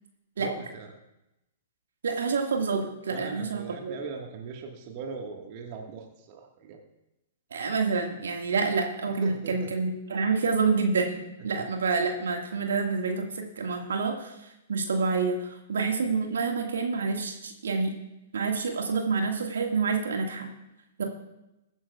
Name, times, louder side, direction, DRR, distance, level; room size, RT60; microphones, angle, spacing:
voice 1, 0.4-1.0 3.1-6.8 9.2-9.7 11.5-11.6, right 5 dB, 40° right, 3 dB, 1.7 m, -39 dB
voice 2, 2.0-4.0 7.5-14.3 14.7-18.0 18.3-20.5 21.0-21.1, right 4 dB, 65° right, 3 dB, 1.9 m, -28 dB
22.5 x 11.0 x 2.4 m, 0.91 s
figure-of-eight pair, 105°, 0 cm